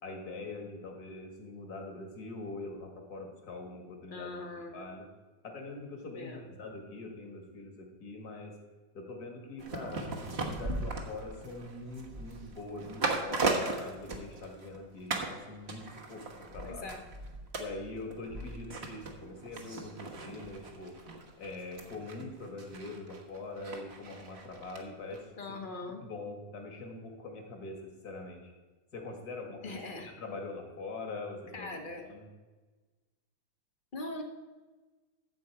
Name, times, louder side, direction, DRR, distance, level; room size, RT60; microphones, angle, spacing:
voice 1, 0.0-4.4 4.7-5.0 5.4-8.6 8.9-16.9 17.6-21.0 21.4-25.6 25.9-28.5 28.9-31.8 32.1-32.3, left 2 dB, 55° left, 2 dB, 2.2 m, -43 dB
voice 2, 4.1-4.8 6.1-6.4 16.6-17.0 25.4-26.0 29.6-30.1 31.5-32.1 33.9-34.2, left 2 dB, 35° left, 4 dB, 0.9 m, -41 dB
sound 1, 9.6-14.8 15.1-15.4 15.7-24.8 25.1-25.2, right 3 dB, 35° right, 1.4 m, -38 dB
13.0 x 7.8 x 4.7 m, 1.3 s
omnidirectional pair, 2.1 m